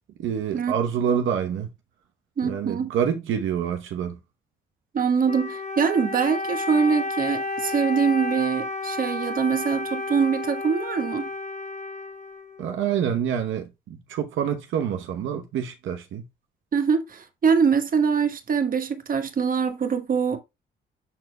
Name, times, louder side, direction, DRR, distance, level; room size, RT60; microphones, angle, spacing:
voice 1, 0.2-1.7 2.4-4.2 12.6-13.7 14.1-16.2, right 8 dB, 80° right, 0.9 m, -26 dB
voice 2, 2.4-2.9 4.9-11.3 16.7-20.4, right 6 dB, 45° right, 1.4 m, -23 dB
Wind instrument woodwind instrument, 5.2-12.8, left 2 dB, 35° left, 1.2 m, -31 dB
11.5 x 4.1 x 2.2 m
cardioid pair, 90°, 20 cm